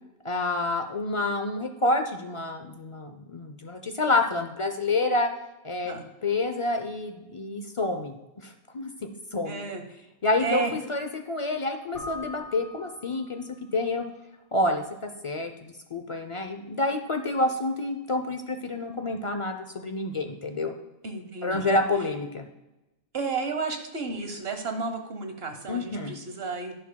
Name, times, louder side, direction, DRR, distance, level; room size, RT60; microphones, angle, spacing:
voice 1, 0.2-5.3 5.6-5.9 6.2-8.1 8.4-9.6 10.2-13.5 13.7-14.1 14.5-20.7 21.4-22.5 25.7-26.1, left 2 dB, 55° left, 6 dB, 0.3 m, -28 dB
voice 2, 9.4-9.8 10.4-10.7 21.0-21.7 23.1-26.8, right 4 dB, 50° right, 6 dB, 1.3 m, -32 dB
Keyboard (musical), 11.9-13.8, left 3 dB, 40° left, 1.6 m, -42 dB
11.0 x 10.0 x 2.3 m, 0.99 s
omnidirectional pair, 1.5 m